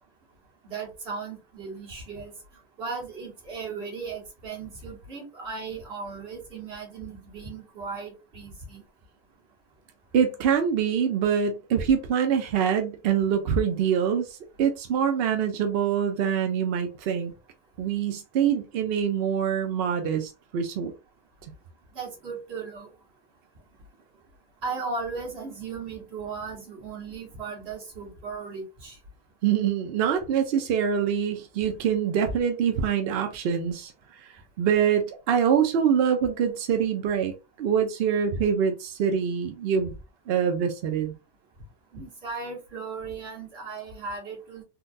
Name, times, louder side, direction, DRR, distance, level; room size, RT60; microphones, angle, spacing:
voice 1, 0.6-2.3 2.8-8.8 21.9-22.9 24.6-29.0 41.9-44.6, right 4 dB, 50° right, 1.5 m, -36 dB
voice 2, 10.1-17.3 17.8-20.9 29.4-37.3 37.6-39.9 40.3-41.1, right 8 dB, 65° right, 0.6 m, -25 dB
3.8 x 2.2 x 2.6 m
omnidirectional pair, 1.4 m